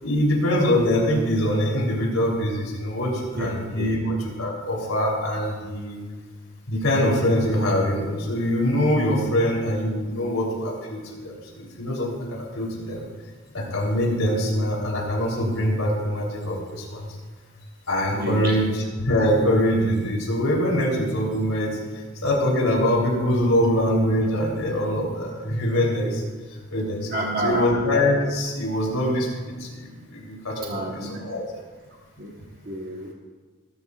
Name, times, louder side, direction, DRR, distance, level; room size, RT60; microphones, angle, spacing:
voice 1, 0.0-6.0 6.7-13.0 13.5-17.1 17.9-21.8 22.2-26.2 26.7-31.5, left 1 dB, 90° left, -3 dB, 3.5 m, -23 dB
voice 2, 18.1-18.5 27.1-27.7 30.7-31.2 32.2-32.3 32.7-33.1, right 1 dB, 45° right, -1 dB, 1.2 m, -28 dB
19.5 x 12.5 x 2.5 m, 1.4 s
head